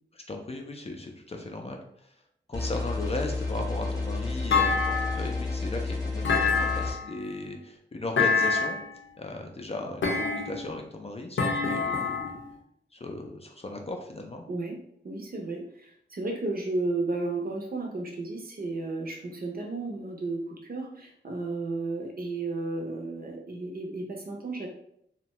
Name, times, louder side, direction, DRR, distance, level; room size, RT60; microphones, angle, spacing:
voice 1, 0.3-2.1 2.5-8.8 9.2-12.4 12.9-14.4, left 2 dB, 30° left, 3 dB, 0.4 m, -37 dB
sound 1, 2.5-6.9, left 3 dB, 15° left, 0.8 m, -31 dB
Thump thud, 4.5-5.4 6.2-7.2 8.2-8.9 10.0-10.7 11.4-12.4, left 4 dB, 90° left, 0.6 m, -26 dB
voice 2, 14.5-14.8 15.0-24.7, right 2 dB, 50° right, 1 dB, 0.6 m, -33 dB
2.6 x 2.1 x 3.0 m, 0.69 s
wide cardioid pair, 120°, 20 cm